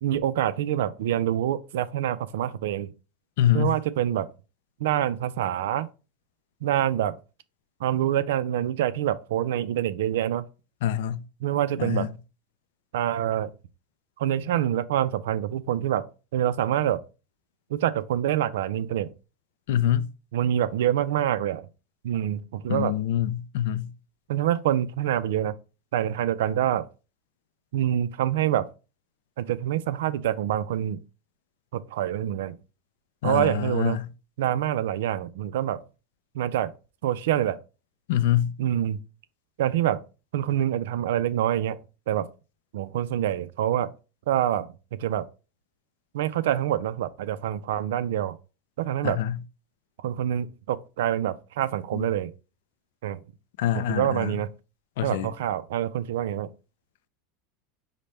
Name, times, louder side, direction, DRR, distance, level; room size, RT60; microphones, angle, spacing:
voice 1, 0.0-2.9 3.5-4.3 4.8-5.9 6.6-7.1 7.8-10.4 11.4-12.1 12.9-13.5 14.2-16.0 16.3-17.0 17.7-19.1 20.3-21.7 22.0-22.9 24.3-25.5 25.9-26.9 27.7-28.7 29.4-31.0 31.7-32.6 33.2-34.0 34.4-35.8 36.3-36.7 37.0-37.6 38.6-39.0 39.6-40.0 40.3-41.8 42.1-42.3 42.7-43.9 44.3-44.7 45.0-45.3 46.1-48.3 48.8-49.2 50.0-52.3 53.0-53.2 53.9-54.5 55.0-56.5, right 11 dB, 85° right, 0.4 m, -26 dB
voice 2, 3.4-3.8 10.8-11.2 11.8-12.1 19.7-20.1 22.7-23.9 33.2-34.1 38.1-38.5 49.0-49.4 51.9-52.1 53.6-54.4 55.0-55.3, left 11 dB, 80° left, 0.4 m, -25 dB
5.1 x 2.1 x 4.2 m
supercardioid pair, 135°, 0 cm